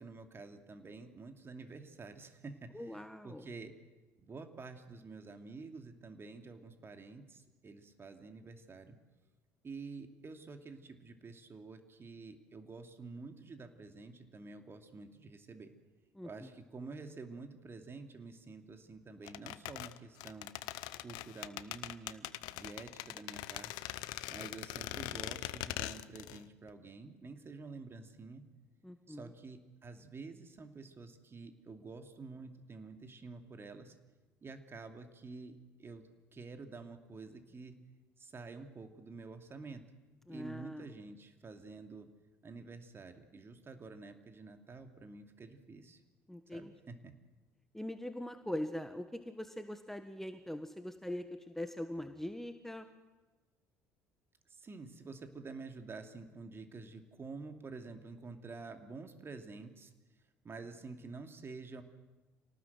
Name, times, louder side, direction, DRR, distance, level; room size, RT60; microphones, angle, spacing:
voice 1, 0.0-3.7 4.2-9.0 9.6-15.7 16.2-20.5 21.0-23.8 24.3-28.4 29.1-33.9 34.4-37.8 38.2-39.8 40.3-42.1 42.4-46.0 46.5-47.1 54.5-59.9 60.4-61.8, right 4 dB, 30° right, 6 dB, 2.6 m, -49 dB
voice 2, 2.7-3.5 16.1-16.5 28.8-29.3 40.3-40.9 46.3-46.7 47.7-52.8, left 1 dB, 5° left, 8 dB, 1.5 m, -42 dB
sound 1, 19.3-26.4 26.7-26.8, left 17 dB, 60° left, 0.8 m, -42 dB
26.5 x 18.5 x 7.8 m, 1.2 s
figure-of-eight pair, 55°, 8 cm